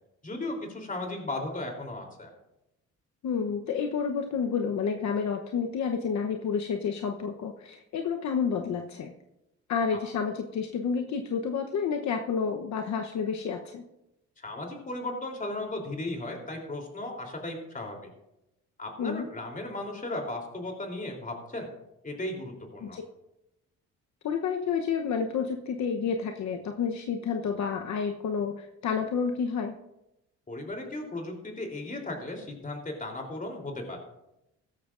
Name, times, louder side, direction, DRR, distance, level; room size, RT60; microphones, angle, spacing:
voice 1, 0.2-2.3 9.9-10.0 14.4-18.1 18.8-21.7 22.0-23.0 30.5-34.0, left 2 dB, 25° left, 2 dB, 3.4 m, -36 dB
voice 2, 3.2-9.1 9.7-13.8 19.0-19.3 22.8-23.0 24.2-29.7, left 6 dB, 65° left, 4 dB, 1.0 m, -30 dB
16.0 x 13.5 x 2.5 m, 0.89 s
cardioid pair, 90°, 30 cm